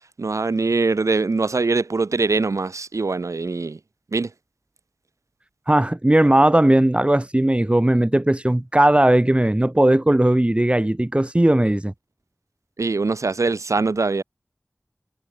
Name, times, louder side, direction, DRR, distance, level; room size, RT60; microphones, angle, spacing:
voice 1, 0.2-3.8 4.1-4.3 12.8-14.2, right 3 dB, 80° right, 0.6 m, -22 dB
voice 2, 5.7-11.9, right 1 dB, 20° right, 0.9 m, -17 dB
wide cardioid pair, 50°, 5 cm